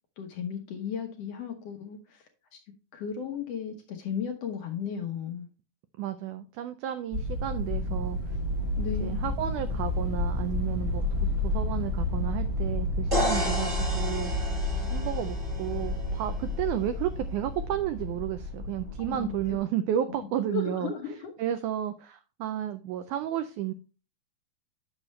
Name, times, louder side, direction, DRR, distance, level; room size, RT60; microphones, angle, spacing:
voice 1, 0.2-2.6 2.9-5.5 8.8-9.3 19.1-19.6 20.1-21.3, left 7 dB, 80° left, 3 dB, 1.4 m, -35 dB
voice 2, 6.0-8.4 9.0-14.3 14.9-20.9 21.4-23.7, right 11 dB, 85° right, 9 dB, 1.7 m, -32 dB
sound 1, 7.1-19.6, left 2 dB, 55° right, 0.7 m, -31 dB
sound 2, 13.1-16.9, right 1 dB, 30° right, 1.0 m, -33 dB
8.8 x 6.3 x 3.1 m, 0.34 s
omnidirectional pair, 4.1 m